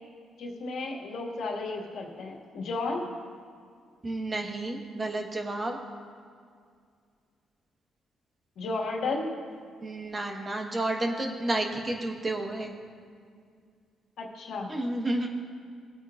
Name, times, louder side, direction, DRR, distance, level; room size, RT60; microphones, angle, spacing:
voice 1, 0.4-3.0 8.6-9.3 14.2-14.7, left 3 dB, 75° left, -1 dB, 2.0 m, -33 dB
voice 2, 4.0-5.8 9.8-12.7 14.7-15.3, right 2 dB, 30° right, 2 dB, 1.3 m, -31 dB
20.5 x 8.7 x 2.5 m, 2.2 s
cardioid pair, 90°, 0 cm